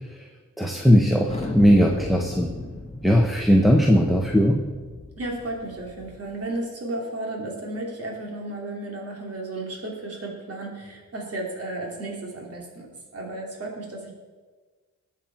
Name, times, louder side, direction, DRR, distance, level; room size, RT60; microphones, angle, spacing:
voice 1, 0.6-2.5 3.0-4.6, equal, ahead, 1 dB, 1.0 m, -18 dB
Thunder, 1.3-6.4, left 2 dB, 20° left, 1.4 m, -38 dB
voice 2, 5.2-12.9 13.1-14.1, right 2 dB, 45° right, -1 dB, 2.8 m, -33 dB
19.5 x 7.4 x 4.5 m, 1.4 s
wide cardioid pair, 125°, 32 cm